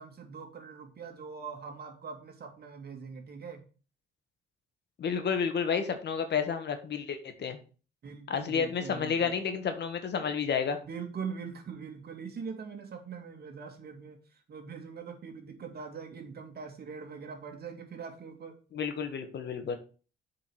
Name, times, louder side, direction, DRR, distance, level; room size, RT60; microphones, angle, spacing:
voice 1, 0.0-3.6 8.0-9.4 10.9-18.6, right 6 dB, 55° right, 4 dB, 2.3 m, -42 dB
voice 2, 5.0-7.6 8.3-10.8 18.7-19.8, left 6 dB, 60° left, 8 dB, 1.6 m, -31 dB
7.5 x 4.9 x 6.3 m, 0.37 s
cardioid pair, 90°, 20 cm